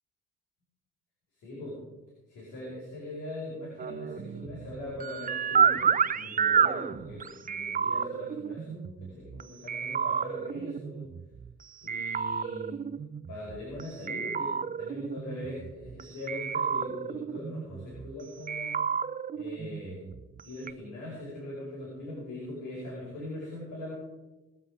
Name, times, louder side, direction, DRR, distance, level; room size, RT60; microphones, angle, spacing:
voice 1, 1.4-1.8 2.3-11.0 11.8-12.8 13.3-18.7 19.3-20.0 20.4-23.9, left 1 dB, 85° left, -5 dB, 5.3 m, -41 dB
sound 1, 3.8-9.4 9.7-11.5 11.9-13.8 14.1-16.0 16.3-18.1 18.5-20.4 20.7-20.8, right 7 dB, 30° right, 0.5 m, -30 dB
20.5 x 7.8 x 5.0 m, 1.1 s
cardioid pair, 90°, 30 cm